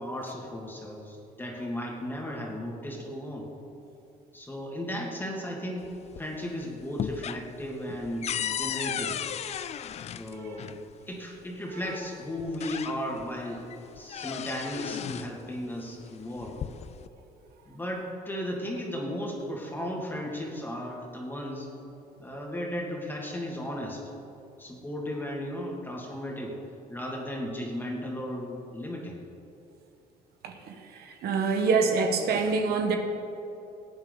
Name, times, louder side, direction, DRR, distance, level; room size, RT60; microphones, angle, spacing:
voice 1, 0.0-3.5 4.3-5.9 6.2-9.2 10.1-10.7 11.1-13.6 14.0-16.6 17.7-21.7 22.2-24.0 24.6-26.6 26.9-29.2, equal, 10° left, -1 dB, 2.4 m, -35 dB
sound 1, 5.8-6.5 6.8-10.8 11.9-12.0 12.4-13.3 13.7-15.4 16.3-17.1, left 9 dB, 40° left, 0.4 m, -35 dB
voice 2, 30.4-33.0, right 4 dB, 70° right, 4 dB, 1.3 m, -26 dB
18.5 x 8.8 x 4.0 m, 2.8 s
cardioid pair, 110°, 17 cm